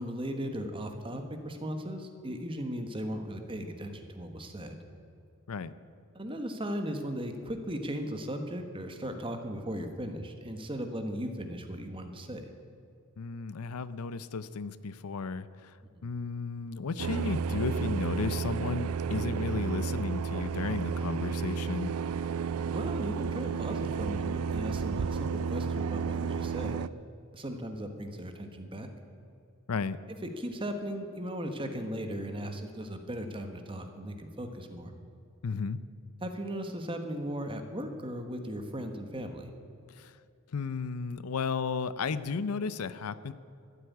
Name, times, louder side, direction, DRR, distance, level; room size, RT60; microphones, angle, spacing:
voice 1, 0.0-4.8 6.1-12.5 16.0-16.1 22.6-26.8 27.3-28.9 30.4-34.9 36.2-39.5, equal, 25° right, 6 dB, 1.3 m, -37 dB
voice 2, 13.2-15.8 16.0-21.9 29.7-30.0 35.4-35.8 39.9-40.2 40.5-43.3, left 5 dB, 80° left, 15 dB, 0.6 m, -34 dB
sound 1, 17.0-26.9, right 6 dB, 75° right, 0.4 m, -32 dB
13.5 x 8.1 x 9.5 m, 2.5 s
head